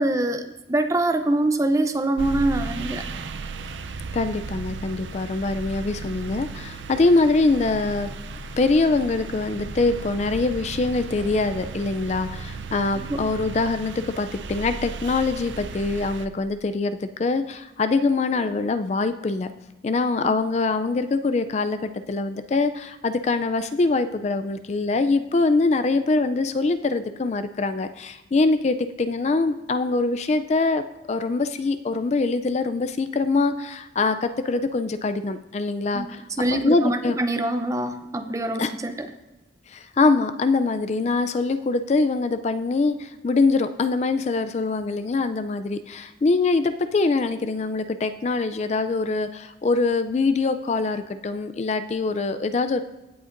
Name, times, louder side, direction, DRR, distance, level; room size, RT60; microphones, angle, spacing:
voice 1, 0.0-3.0 13.0-13.2 20.2-20.4 35.9-39.1, right 1 dB, 15° right, 8 dB, 0.5 m, -24 dB
sound 1, 2.2-16.3, right 4 dB, 80° right, 0.5 m, -35 dB
voice 2, 4.1-8.1 8.6-19.5 19.8-30.8 31.1-36.2 36.5-37.2 38.6-38.7 39.7-52.8, left 3 dB, 35° left, 10 dB, 0.3 m, -23 dB
16.5 x 7.9 x 2.6 m, 1.1 s
head